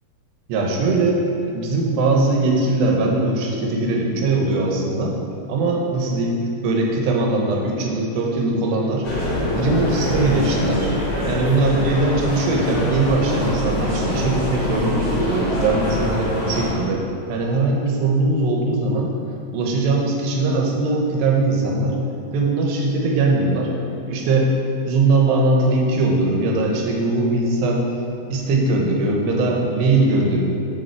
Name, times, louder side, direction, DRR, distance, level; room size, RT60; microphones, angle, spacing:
voice 1, 0.5-1.2 1.5-5.1 5.5-9.1 9.5-10.9 11.2-17.0 17.3-19.1 19.5-22.0 22.3-23.7 24.1-24.5 24.9-27.8 28.3-30.4, right 2 dB, 80° right, 0 dB, 3.1 m, -20 dB
sound 1, 9.0-16.7, left 1 dB, 45° left, 1.4 m, -24 dB
7.0 x 6.7 x 4.5 m, 2.6 s
omnidirectional pair, 4.8 m